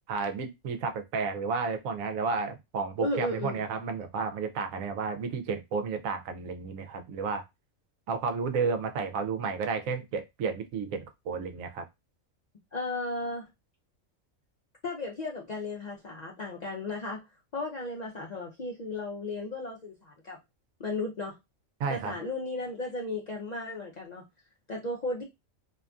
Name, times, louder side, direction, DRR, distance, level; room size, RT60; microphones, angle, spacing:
voice 1, 0.1-7.4 8.1-11.8 21.8-22.2, right 5 dB, 80° right, 1.0 m, -32 dB
voice 2, 3.0-3.6 12.7-13.5 14.8-17.2 17.5-20.4 20.8-21.4 21.9-24.2 24.7-25.2, left 2 dB, 75° left, 0.3 m, -35 dB
2.7 x 2.5 x 2.3 m
omnidirectional pair, 1.4 m